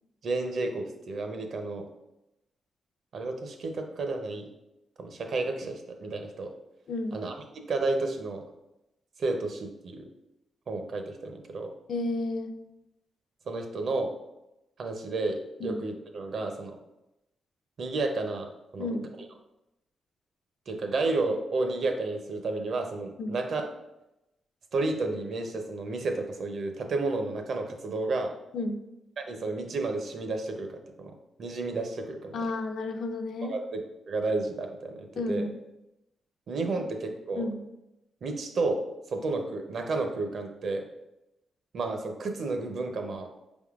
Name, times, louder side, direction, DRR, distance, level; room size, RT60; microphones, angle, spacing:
voice 1, 0.2-1.9 3.1-4.5 5.0-6.5 7.1-8.4 9.2-10.1 10.7-11.7 13.5-14.1 14.8-16.8 17.8-19.1 20.7-23.7 24.7-28.3 29.2-32.5 33.4-35.5 36.5-37.5 38.2-38.8 39.1-40.8 41.7-43.3, right 3 dB, 55° right, 5 dB, 0.5 m, -31 dB
voice 2, 6.9-7.2 11.9-12.5 15.6-15.8 18.8-19.1 23.2-23.4 28.5-28.8 32.3-33.6 35.2-35.6 37.4-37.6, left 2 dB, 65° left, 6 dB, 0.4 m, -32 dB
5.1 x 3.5 x 2.4 m, 0.91 s
wide cardioid pair, 135°, 0 cm